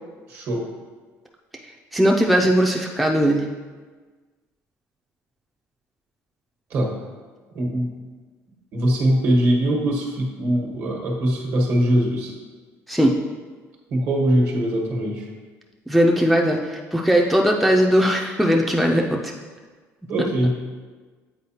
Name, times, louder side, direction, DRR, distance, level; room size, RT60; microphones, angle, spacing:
voice 1, 0.3-0.7 6.7-6.9 7.5-7.9 8.7-12.3 13.9-15.3 20.1-20.7, right 1 dB, 55° right, 0 dB, 1.3 m, -22 dB
voice 2, 1.9-3.5 12.9-13.1 15.9-19.3, equal, ahead, 0 dB, 0.4 m, -19 dB
7.9 x 4.2 x 2.8 m, 1.4 s
cardioid pair, 135°, 6 cm